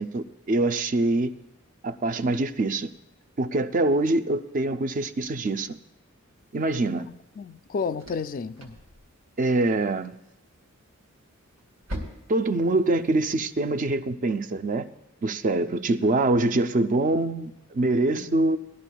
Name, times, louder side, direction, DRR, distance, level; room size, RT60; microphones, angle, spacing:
voice 1, 0.0-1.3 1.8-2.9 3.4-5.8 6.5-7.1 9.4-10.2 12.3-14.9 15.2-18.6, right 2 dB, 40° right, 0.5 m, -24 dB
sound 1, 6.3-13.5, equal, 85° right, 2.1 m, -45 dB
voice 2, 7.1-8.8 18.1-18.5, left 5 dB, 40° left, 0.3 m, -32 dB
19.0 x 12.5 x 2.3 m
head